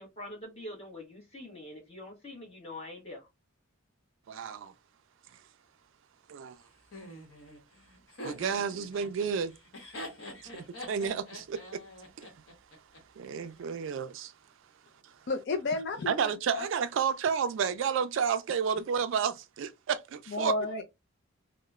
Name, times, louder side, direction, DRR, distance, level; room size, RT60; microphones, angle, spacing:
voice 1, 0.0-3.3 13.3-13.7, left 1 dB, 30° left, 1.2 m, -45 dB
voice 2, 4.3-4.7 6.3-6.5 8.2-9.5 10.5-11.8 12.2-12.3 13.2-14.3 15.0-15.1 16.1-20.5, right 6 dB, 65° right, 0.3 m, -31 dB
Laughter, 6.9-13.0, left 1 dB, 70° left, 1.0 m, -45 dB
voice 3, 15.3-16.7 20.3-20.8, left 2 dB, 50° left, 0.4 m, -32 dB
2.9 x 2.1 x 2.3 m
head